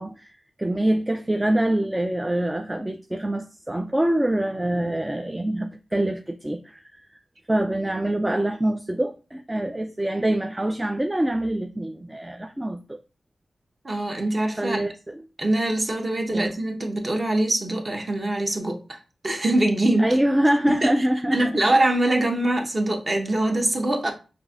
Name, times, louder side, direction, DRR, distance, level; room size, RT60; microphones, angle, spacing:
voice 1, 0.0-7.1 7.5-12.8 14.6-15.2 16.3-16.5 20.0-21.6, right 1 dB, 15° right, 0.3 m, -25 dB
voice 2, 13.8-14.8 15.4-19.0 19.2-20.1 20.6-21.1 21.3-24.1, right 1 dB, 35° right, 0.9 m, -23 dB
5.9 x 2.6 x 2.4 m
wide cardioid pair, 85°, 0 cm